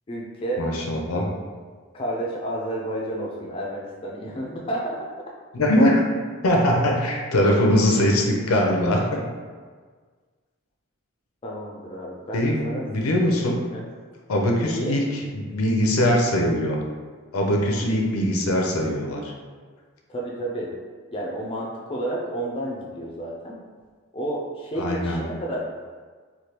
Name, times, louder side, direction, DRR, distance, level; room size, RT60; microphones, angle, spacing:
voice 1, 0.1-0.7 1.9-4.9 11.4-12.9 13.7-13.8 14.6-15.0 20.1-20.7 21.1-23.6 24.1-25.6, right 1 dB, 25° left, -3 dB, 0.3 m, -30 dB
voice 2, 0.6-1.3 5.5-6.0 6.4-9.2 12.3-12.6 12.9-13.6 14.3-15.0 15.3-16.8 17.3-19.3 24.8-25.2, left 1 dB, 90° left, 1 dB, 0.5 m, -21 dB
3.2 x 2.2 x 2.8 m, 1.5 s
head